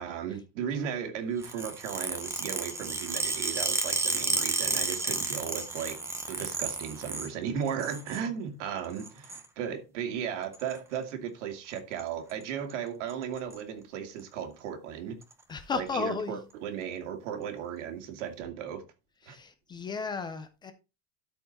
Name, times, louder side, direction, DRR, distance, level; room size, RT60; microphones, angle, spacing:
voice 1, 0.0-6.0 6.3-15.2 15.7-18.8 19.3-19.4, right 8 dB, 90° right, 2.2 m, -36 dB
sound 1, 1.4-7.3 7.7-8.2 9.0-9.4 10.5-10.8 11.7-12.0 12.3-12.4 12.7-12.8 13.1-13.6 14.2-14.3 15.2-15.3, right 3 dB, 5° right, 0.8 m, -32 dB
voice 2, 15.5-16.5 19.2-20.7, left 5 dB, 15° left, 0.4 m, -34 dB
12.5 x 4.6 x 4.2 m
cardioid pair, 175°, 35 cm